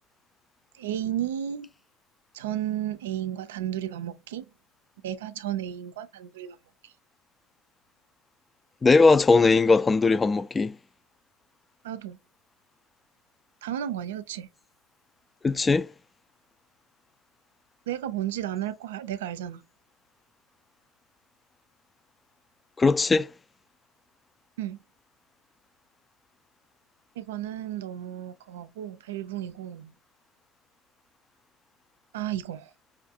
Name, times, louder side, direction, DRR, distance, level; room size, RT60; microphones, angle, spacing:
voice 1, 0.7-1.7 2.3-4.5 5.0-6.6 6.8-6.9 11.8-12.2 13.6-14.5 17.9-19.6 24.6-24.8 27.2-29.9 32.1-32.7, right 11 dB, 85° right, 0.4 m, -33 dB
voice 2, 8.8-10.7 15.4-15.9 22.8-23.3, left 3 dB, 20° left, 0.3 m, -19 dB
4.9 x 2.4 x 2.7 m
hypercardioid pair, 95°, 0 cm